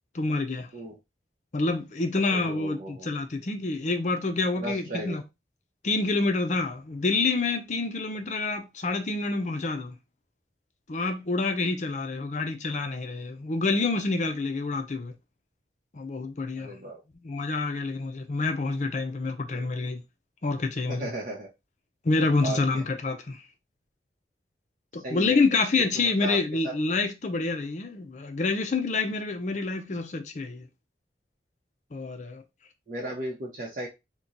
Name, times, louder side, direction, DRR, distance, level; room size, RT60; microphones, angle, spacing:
voice 1, 0.1-0.7 1.5-5.2 5.8-10.0 10.9-15.1 15.9-16.7 17.2-20.0 20.4-21.1 22.0-23.4 24.9-30.7 31.9-32.4, left 3 dB, 40° left, 0.5 m, -27 dB
voice 2, 2.3-3.1 4.6-5.2 16.6-17.0 19.5-19.7 20.9-21.5 22.4-22.8 25.0-25.4 25.8-26.4 26.6-26.7 32.9-33.9, right 1 dB, 50° right, 0.8 m, -35 dB
2.9 x 2.2 x 3.8 m
head